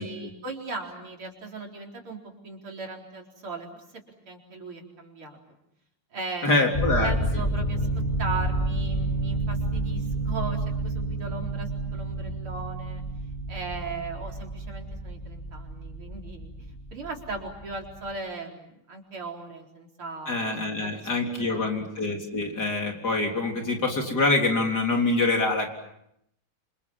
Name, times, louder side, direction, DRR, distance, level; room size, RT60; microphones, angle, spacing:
voice 1, 0.0-3.8 4.3-5.4 6.1-6.6 7.0-7.9 8.2-13.0 13.5-21.9, right 3 dB, 75° right, 1 dB, 5.2 m, -38 dB
voice 2, 6.4-7.1 20.3-25.7, left 2 dB, 45° left, 2 dB, 4.3 m, -25 dB
sound 1, 6.7-18.1, right 1 dB, 20° left, 6.1 m, -30 dB
28.0 x 27.0 x 7.4 m, 0.77 s
omnidirectional pair, 2.4 m